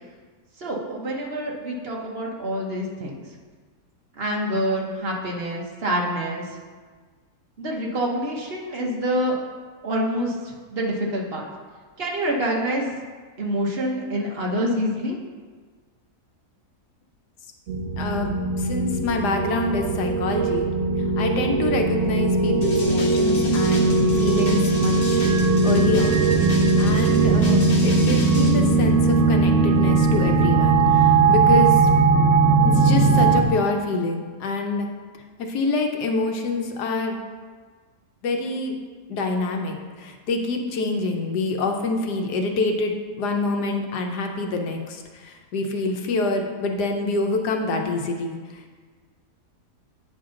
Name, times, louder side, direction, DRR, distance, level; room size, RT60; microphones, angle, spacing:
voice 1, 0.6-3.2 4.2-6.5 7.6-9.4 9.8-11.5 12.0-12.9 13.4-15.2, equal, 45° right, -1 dB, 1.0 m, -26 dB
sound 1, 17.7-33.4, right 3 dB, 65° right, 0.8 m, -19 dB
voice 2, 18.0-20.7 21.0-25.2 25.6-31.9 32.6-34.9 35.4-37.2 38.2-38.7 39.1-48.8, left 3 dB, 85° left, 3 dB, 1.4 m, -26 dB
sound 2, 22.6-28.5, left 2 dB, 65° left, 1.6 m, -32 dB
8.6 x 5.5 x 3.8 m, 1.5 s
omnidirectional pair, 1.7 m